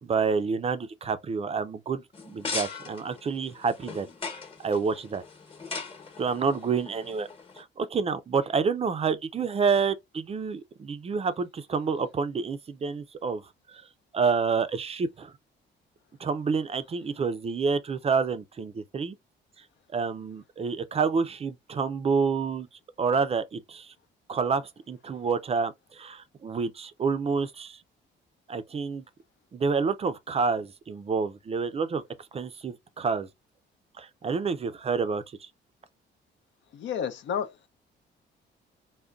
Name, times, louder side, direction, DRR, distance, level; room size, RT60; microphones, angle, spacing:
voice 1, 0.0-5.2 6.2-7.3 7.6-13.4 13.7-13.9 14.1-15.3 16.2-19.2 19.9-22.7 23.0-23.9 24.3-27.8 28.5-29.0 29.5-32.0 32.3-33.3 34.0-35.5, right 5 dB, 30° right, 0.4 m, -28 dB
sound 1, 2.1-7.6, left 4 dB, 25° left, 1.0 m, -39 dB
voice 2, 36.7-37.7, left 8 dB, 70° left, 0.6 m, -31 dB
3.6 x 2.1 x 2.3 m
cardioid pair, 115°, 20 cm